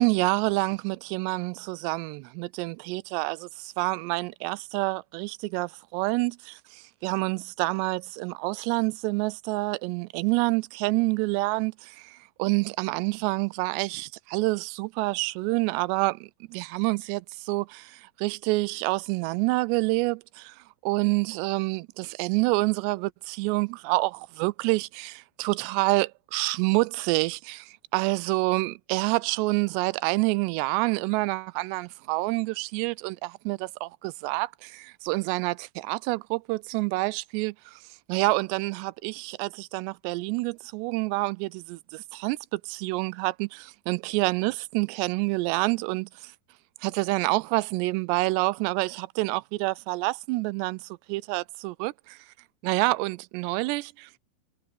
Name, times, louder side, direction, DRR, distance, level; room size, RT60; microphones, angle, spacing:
voice 1, 0.0-37.8 38.1-46.3 46.8-52.2 52.6-54.2, right 23 dB, 85° right, 2.7 m, -28 dB
omnidirectional pair, 4.9 m